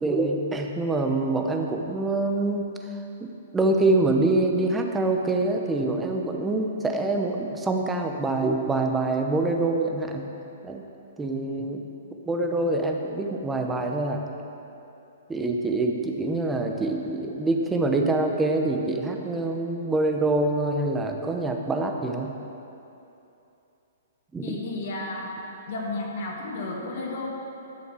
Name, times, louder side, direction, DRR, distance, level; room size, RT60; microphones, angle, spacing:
voice 1, 0.0-10.3 10.6-10.8 11.2-11.9 12.3-14.2 15.3-22.3 24.3-24.6, right 2 dB, 10° right, 2 dB, 0.8 m, -25 dB
voice 2, 24.4-25.4 25.7-27.3, left 2 dB, 55° left, -2 dB, 2.4 m, -32 dB
11.5 x 7.0 x 6.2 m, 2.9 s
hypercardioid pair, 155°, 0 cm